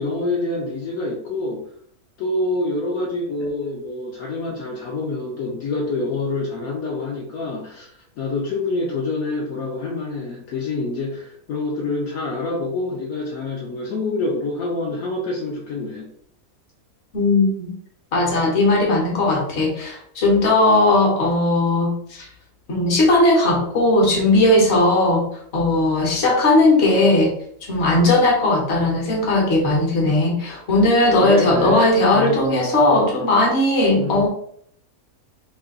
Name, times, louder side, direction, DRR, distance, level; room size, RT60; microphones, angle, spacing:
voice 1, 0.0-1.6 2.2-16.1 31.2-31.8 32.1-32.4 34.0-34.2, left 2 dB, 70° left, -2 dB, 1.0 m, -26 dB
voice 2, 17.1-17.7 18.1-22.3 22.7-25.3 25.5-27.3 27.7-34.3, left 2 dB, 50° left, -1 dB, 1.2 m, -17 dB
3.2 x 2.5 x 3.7 m, 0.65 s
omnidirectional pair, 1.6 m